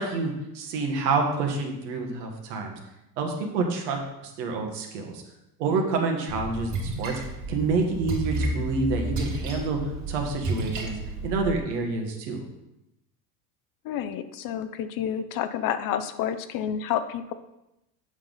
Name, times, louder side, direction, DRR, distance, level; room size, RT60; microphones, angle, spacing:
voice 1, 0.0-2.7 3.2-5.2 5.6-7.2 7.5-11.0 11.2-12.4, right 3 dB, 80° right, 2 dB, 1.6 m, -28 dB
Splash splatter, 6.3-11.6, right 2 dB, 40° right, 2.1 m, -32 dB
voice 2, 13.8-17.3, left 9 dB, 45° left, 11 dB, 0.6 m, -29 dB
8.2 x 5.3 x 3.9 m, 0.89 s
supercardioid pair, 100°, 48 cm